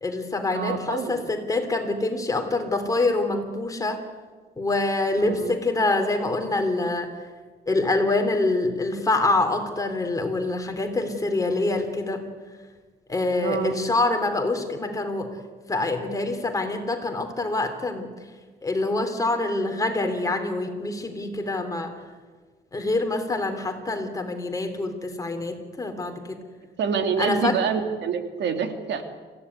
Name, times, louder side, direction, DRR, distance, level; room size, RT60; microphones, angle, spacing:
voice 1, 0.0-4.0 4.6-7.1 7.7-12.2 13.1-15.3 15.7-18.1 18.6-21.9 22.7-26.4 27.2-27.6, left 2 dB, 20° left, 5 dB, 3.1 m, -25 dB
voice 2, 0.5-1.2 5.2-5.6 13.4-13.8 26.8-29.0, right 6 dB, 75° right, 6 dB, 2.6 m, -26 dB
26.0 x 16.0 x 9.7 m, 1.4 s
cardioid pair, 150°, 18 cm